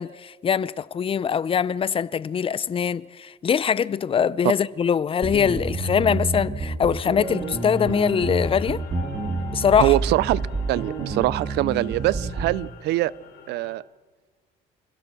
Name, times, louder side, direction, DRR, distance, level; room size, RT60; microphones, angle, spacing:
voice 1, 0.0-8.8 9.5-10.0, left 7 dB, 35° left, 0.5 m, -23 dB
sound 1, 5.2-12.6, right 3 dB, 30° right, 2.0 m, -29 dB
sound 2, 7.2-13.7, left 6 dB, 75° left, 3.5 m, -44 dB
voice 2, 9.8-10.4 10.7-13.1 13.5-13.8, right 17 dB, 80° right, 0.5 m, -23 dB
26.5 x 15.5 x 6.8 m
cardioid pair, 110°, 17 cm